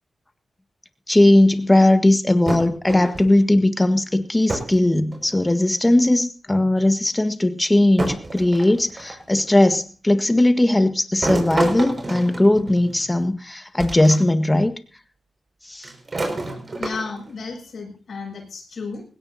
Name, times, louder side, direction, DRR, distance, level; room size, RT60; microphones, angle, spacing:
voice 1, 1.1-14.7 15.7-15.9, left 1 dB, 20° left, 9 dB, 1.6 m, -18 dB
sound 1, 2.5-3.4 4.5-4.8 5.1-5.7 6.8-6.9 8.0-9.3 11.2-13.1 13.8-14.2 14.6-14.7 15.8-17.3, right 2 dB, 50° right, 5.9 m, -28 dB
voice 2, 16.8-19.0, left 4 dB, 70° left, 0 dB, 7.3 m, -33 dB
20.0 x 17.0 x 2.8 m, 0.38 s
cardioid pair, 45°, 0 cm